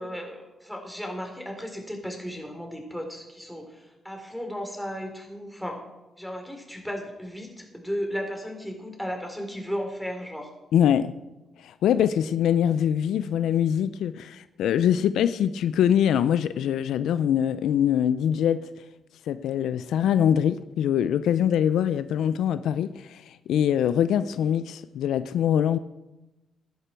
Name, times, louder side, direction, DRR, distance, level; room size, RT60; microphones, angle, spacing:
voice 1, 0.0-5.8 6.2-10.5, equal, ahead, 4.0 m, -35 dB
voice 2, 10.7-11.1 11.6-18.6 19.3-25.8, left 9 dB, 85° left, 0.4 m, -23 dB
16.0 x 11.0 x 4.6 m
cardioid pair, 65°, 0 cm